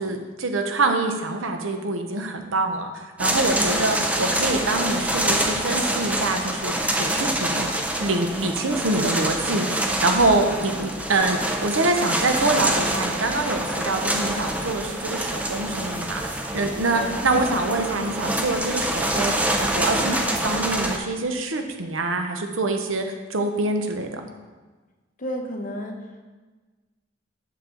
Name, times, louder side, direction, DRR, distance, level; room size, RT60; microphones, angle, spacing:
voice 1, 0.0-6.7 7.0-7.7 8.0-23.0 23.3-24.2, right 2 dB, 85° right, 5 dB, 0.9 m, -25 dB
sound 1, 3.2-21.0, right 1 dB, 5° right, 0.6 m, -26 dB
voice 2, 25.2-26.2, equal, 40° left, 3 dB, 0.9 m, -33 dB
7.4 x 6.8 x 3.8 m, 1.3 s
head